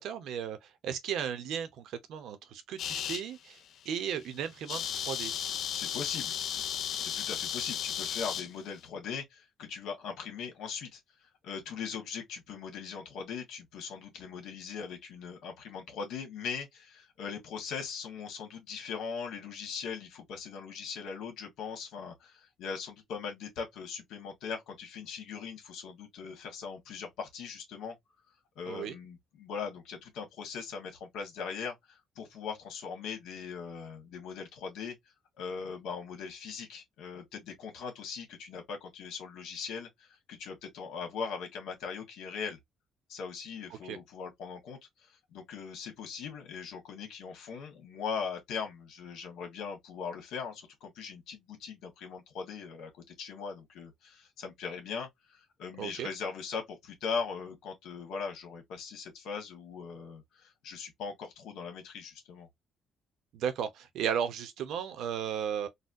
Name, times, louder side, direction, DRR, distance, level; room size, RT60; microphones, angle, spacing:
voice 1, 0.0-3.6 3.8-5.3 28.7-29.0 43.8-44.0 55.8-56.1 63.3-65.7, right 8 dB, 75° right, 0.8 m, -35 dB
sound 1, 2.8-3.2 3.8-4.0 4.2-4.3 4.5-8.5, left 9 dB, 60° left, 0.4 m, -34 dB
voice 2, 5.7-6.4 7.0-11.0 11.4-27.9 28.5-34.9 35.4-42.6 43.1-62.5, left 6 dB, 85° left, 1.5 m, -40 dB
4.1 x 2.2 x 2.6 m
cardioid pair, 140°, 0 cm